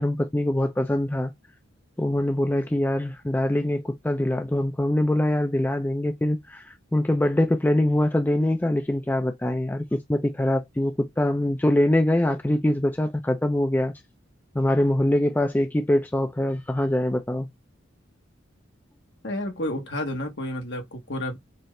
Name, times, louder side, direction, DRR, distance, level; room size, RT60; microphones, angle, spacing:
voice 1, 0.0-1.3 2.0-13.9 14.6-17.5, left 1 dB, 10° left, 0.3 m, -23 dB
voice 2, 19.2-21.4, left 1 dB, 60° left, 1.2 m, -30 dB
4.2 x 2.4 x 3.1 m
head